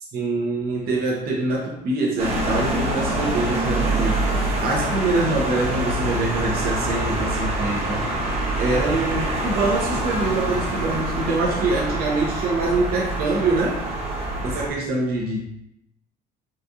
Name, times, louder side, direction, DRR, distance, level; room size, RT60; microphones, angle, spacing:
voice 1, 0.1-4.3 4.6-8.1 8.6-13.8 14.4-15.4, right 2 dB, 65° right, -2 dB, 0.8 m, -24 dB
sound 1, 2.2-14.7, right 1 dB, 35° right, 1.0 m, -25 dB
4.0 x 2.4 x 2.7 m, 0.78 s
cardioid pair, 110°, 17 cm